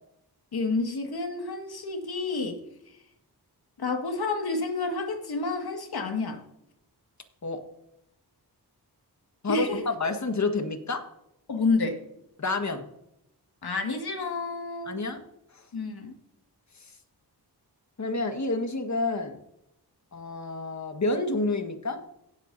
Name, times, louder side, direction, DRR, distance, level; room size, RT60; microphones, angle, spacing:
voice 1, 0.5-2.6 3.8-6.4 9.5-9.8 11.5-12.0 13.6-15.0 15.7-16.2, left 3 dB, 65° left, 3 dB, 2.1 m, -29 dB
voice 2, 9.4-11.1 12.4-12.8 14.8-15.2 15.5-15.6 18.0-19.4 20.1-22.0, left 3 dB, 45° left, 6 dB, 1.6 m, -29 dB
17.0 x 8.0 x 2.7 m, 0.81 s
wide cardioid pair, 85°, 41 cm